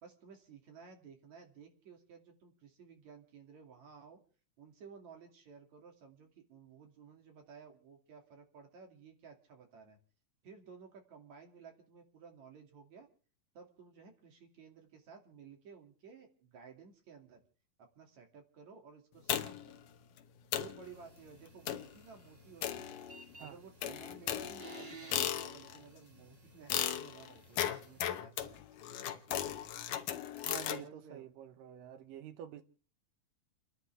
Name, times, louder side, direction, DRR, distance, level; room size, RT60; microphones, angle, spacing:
voice 1, 0.0-4.2 4.6-10.0 10.4-13.1 13.6-17.4 17.8-19.8 20.6-23.0 23.4-29.4 30.4-30.5 30.7-31.3, right 5 dB, 60° right, 3.7 m, -55 dB
sound 1, 19.3-19.8 20.2-20.3 20.5-20.8 21.7-22.0 22.6-23.3 23.8-25.8 26.7-30.8, left 11 dB, 75° left, 2.6 m, -36 dB
sound 2, 20.8-28.0, right 4 dB, 30° right, 1.0 m, -56 dB
voice 2, 30.5-32.6, right 10 dB, 85° right, 2.7 m, -48 dB
30.0 x 11.5 x 3.4 m
omnidirectional pair, 3.8 m